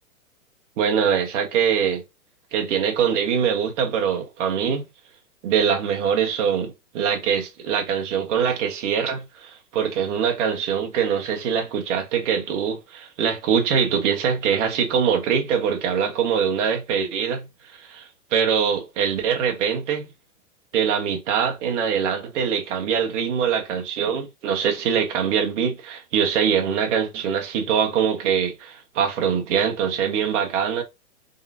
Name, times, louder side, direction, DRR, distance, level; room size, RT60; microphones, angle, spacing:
voice 1, 0.8-2.0 2.5-4.9 5.4-17.5 17.8-18.0 18.3-20.1 20.7-30.8, right 7 dB, 55° right, 1.7 m, -23 dB
4.0 x 3.5 x 2.8 m
hypercardioid pair, 125°, 43 cm